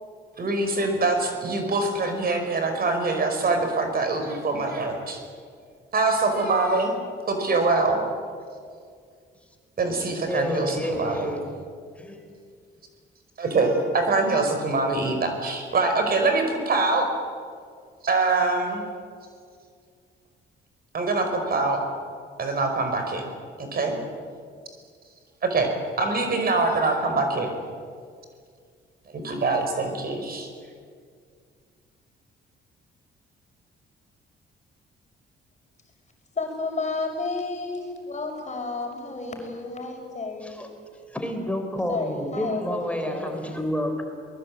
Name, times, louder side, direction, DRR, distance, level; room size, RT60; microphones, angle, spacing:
voice 1, 0.4-5.2 5.9-6.9 7.3-8.0 9.8-11.3 13.4-17.1 18.0-18.8 20.9-21.8 22.4-23.3 23.6-24.0 25.4-25.7 26.0-27.6 29.1-30.5, right 3 dB, 50° right, 5 dB, 5.3 m, -24 dB
voice 2, 10.3-11.5 12.0-12.2 40.4-40.7 41.1-44.0, equal, 5° left, 4 dB, 4.4 m, -29 dB
voice 3, 36.3-40.7 41.9-42.8 43.1-43.3, left 3 dB, 35° left, 3 dB, 6.1 m, -31 dB
22.5 x 20.5 x 8.7 m, 2.1 s
cardioid pair, 90°, 20 cm